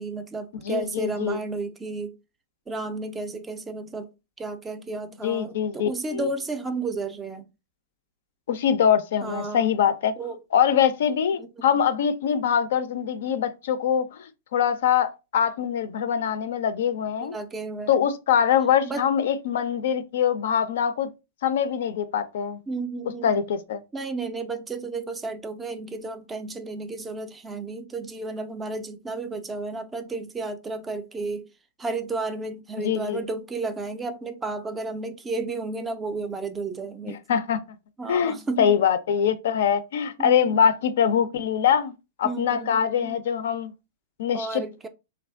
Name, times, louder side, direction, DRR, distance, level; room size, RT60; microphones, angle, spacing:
voice 1, 0.0-2.1 2.7-4.1 4.4-7.4 9.2-9.8 10.2-10.4 11.4-11.5 17.2-18.0 18.8-19.1 22.7-23.3 23.9-31.5 31.8-37.2 38.0-38.7 40.2-40.6 42.2-43.1 44.3-44.9, right 3 dB, 15° right, 0.4 m, -32 dB
voice 2, 0.6-1.4 5.2-6.3 8.5-10.1 10.5-17.3 17.9-21.1 21.4-22.6 23.2-23.8 32.8-33.2 37.1-37.6 38.1-43.7 44.2-44.6, left 8 dB, 55° left, 0.4 m, -23 dB
3.1 x 2.3 x 2.3 m
figure-of-eight pair, 100°, 0 cm